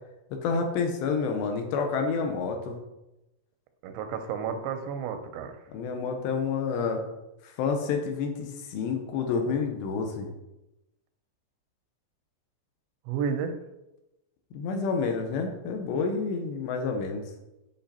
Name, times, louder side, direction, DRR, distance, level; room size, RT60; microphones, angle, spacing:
voice 1, 0.4-2.8 5.7-7.0 7.4-10.3 14.5-17.2, left 5 dB, 80° left, 4 dB, 3.3 m, -29 dB
voice 2, 3.8-5.6 13.1-13.5, right 6 dB, 90° right, 8 dB, 3.1 m, -31 dB
8.7 x 5.4 x 4.3 m, 0.94 s
omnidirectional pair, 4.9 m